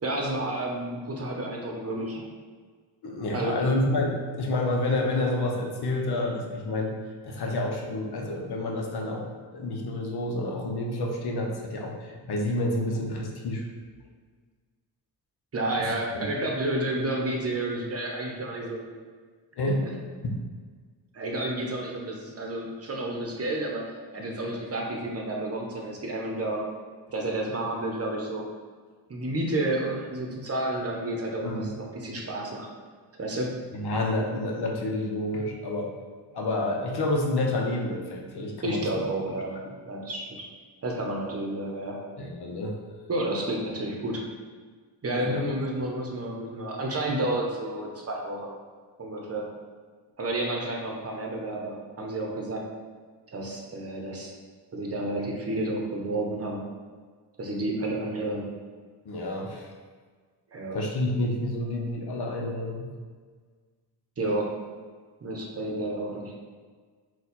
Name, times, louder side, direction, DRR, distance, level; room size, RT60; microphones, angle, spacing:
voice 1, 0.0-2.2 3.3-3.6 15.5-18.8 19.7-19.9 21.1-26.6 27.1-28.5 29.1-32.7 33.2-33.6 38.6-39.5 39.8-40.5 40.8-42.0 43.1-44.2 45.0-48.5 49.0-49.5 50.2-52.6 53.3-54.3 54.7-56.6 57.4-58.5 60.5-60.8 64.2-64.5 65.2-66.3, right 1 dB, 35° right, 0 dB, 0.8 m, -30 dB
voice 2, 3.0-7.0 7.2-13.6 15.8-15.9 16.2-16.3 19.6-19.8 20.2-20.3 31.4-31.7 33.7-35.9 36.3-39.0 39.7-39.8 42.2-42.8 45.2-45.5 59.0-59.7 60.7-62.9, left 1 dB, 70° left, 0 dB, 0.8 m, -29 dB
4.0 x 2.4 x 4.2 m, 1.5 s
cardioid pair, 95°, 41 cm